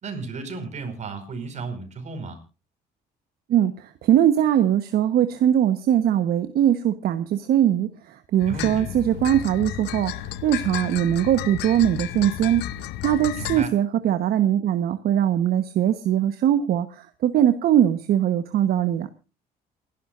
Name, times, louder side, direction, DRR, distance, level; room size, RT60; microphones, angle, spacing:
voice 1, 0.0-2.4 8.5-8.9 13.4-13.7, right 4 dB, 45° right, 7 dB, 5.0 m, -34 dB
voice 2, 3.5-12.6 13.0-19.1, right 10 dB, 65° right, 9 dB, 1.2 m, -21 dB
sound 1, 8.4-13.7, left 13 dB, 85° left, 0.8 m, -33 dB
28.5 x 11.5 x 2.6 m, 0.32 s
cardioid pair, 110°, 17 cm